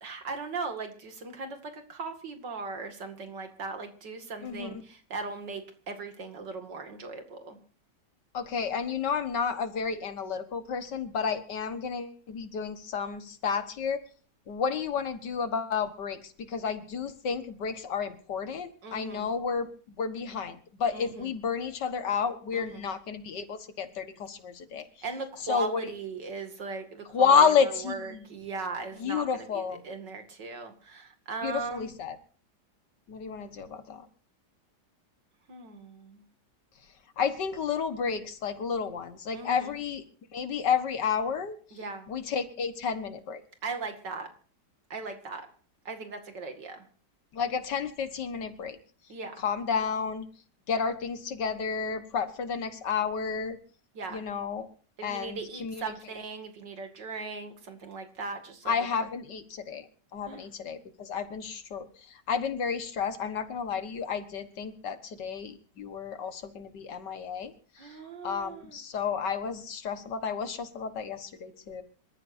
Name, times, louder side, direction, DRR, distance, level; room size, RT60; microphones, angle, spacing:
voice 1, 0.0-7.6 18.8-19.3 20.9-21.3 22.5-22.9 25.0-31.9 35.5-36.2 39.3-39.7 41.7-42.1 43.6-44.3 44.9-45.5 45.8-46.8 49.1-49.4 53.9-54.2 55.0-58.7 60.3-60.5 67.8-68.8, right 4 dB, 85° right, 6 dB, 2.9 m, -38 dB
voice 2, 8.3-14.0 14.5-19.7 20.0-24.8 25.4-25.9 27.1-28.3 29.0-29.8 31.4-32.2 33.1-34.1 37.2-40.0 40.3-41.6 42.1-43.4 47.3-48.8 49.4-50.3 50.7-53.6 54.1-54.7 55.0-55.8 58.7-59.9 60.1-67.5 68.2-71.8, left 6 dB, 80° left, 10 dB, 2.1 m, -31 dB
26.5 x 14.0 x 2.7 m, 0.41 s
omnidirectional pair, 1.9 m